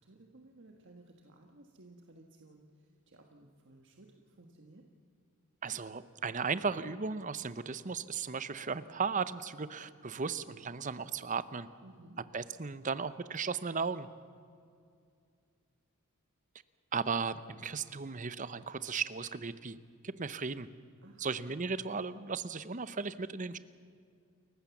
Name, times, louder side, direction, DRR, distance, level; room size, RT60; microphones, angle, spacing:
voice 1, 0.0-4.8 11.8-12.2 21.0-21.3, right 2 dB, 55° right, 2 dB, 1.5 m, -57 dB
voice 2, 5.6-11.7 12.3-14.1 16.9-19.8 20.0-20.7 21.2-23.6, right 5 dB, 35° right, 14 dB, 0.7 m, -36 dB
29.0 x 15.0 x 7.2 m, 2.3 s
head